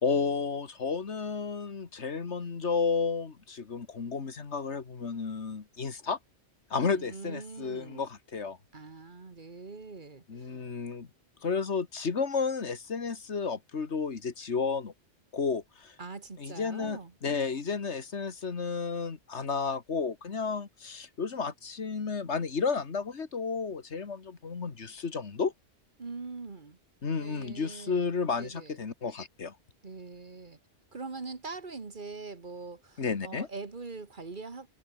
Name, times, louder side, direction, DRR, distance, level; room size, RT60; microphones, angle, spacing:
voice 1, 0.0-6.2 6.7-8.6 10.3-11.1 11.4-14.9 15.3-16.0 16.4-25.5 27.0-29.5 33.0-33.5, left 5 dB, 85° left, 2.1 m, -32 dB
voice 2, 6.8-8.1 8.7-10.6 16.0-17.1 26.0-26.8 27.2-28.1 28.4-28.8 29.8-30.6 30.9-34.7, right 4 dB, 45° right, 1.8 m, -43 dB
omnidirectional pair, 1.1 m